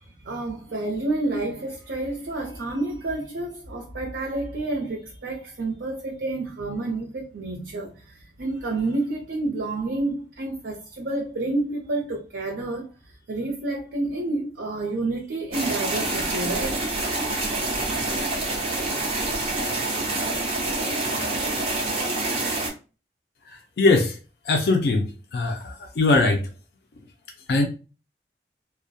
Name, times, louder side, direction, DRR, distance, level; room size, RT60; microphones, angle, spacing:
voice 1, 0.0-17.1 17.8-17.9, right 2 dB, 80° right, 0.5 m, -29 dB
sound 1, 15.5-22.7, right 2 dB, 35° right, 0.5 m, -27 dB
voice 2, 23.5-24.2 24.4-26.5 27.5-27.7, left 3 dB, 60° left, 0.3 m, -21 dB
2.2 x 2.1 x 2.6 m
head